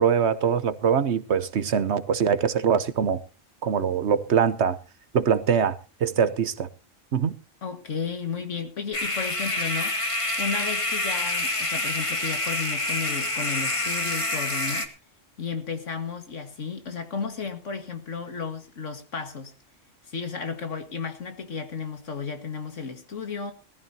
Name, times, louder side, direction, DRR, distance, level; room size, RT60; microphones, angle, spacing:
voice 1, 0.0-3.2 3.6-4.8 5.1-6.7 7.1-7.3, right 7 dB, 60° right, 1.1 m, -23 dB
voice 2, 7.6-10.0 10.4-14.9 15.4-19.5 20.1-23.5, left 5 dB, 70° left, 2.1 m, -33 dB
sound 1, 8.9-14.9, left 2 dB, 25° left, 1.9 m, -27 dB
20.5 x 14.5 x 2.8 m
omnidirectional pair, 1.3 m